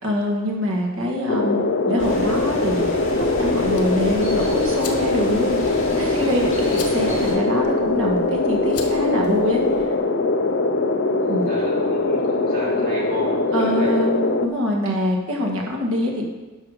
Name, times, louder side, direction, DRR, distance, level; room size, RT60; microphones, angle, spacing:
voice 1, 0.0-1.6 1.9-2.8 3.4-9.6 11.3-11.5 13.5-14.1 14.4-16.2, left 1 dB, 70° right, 0 dB, 1.9 m, -24 dB
sound 1, 1.3-14.5, left 2 dB, 50° left, 0.5 m, -22 dB
sound 2, 2.0-7.3, left 1 dB, 35° left, 2.8 m, -32 dB
sound 3, 3.1-9.9, left 5 dB, 90° left, 1.2 m, -41 dB
voice 2, 11.5-13.9, right 1 dB, 40° right, -5 dB, 2.9 m, -34 dB
11.5 x 5.8 x 5.1 m, 1.2 s
head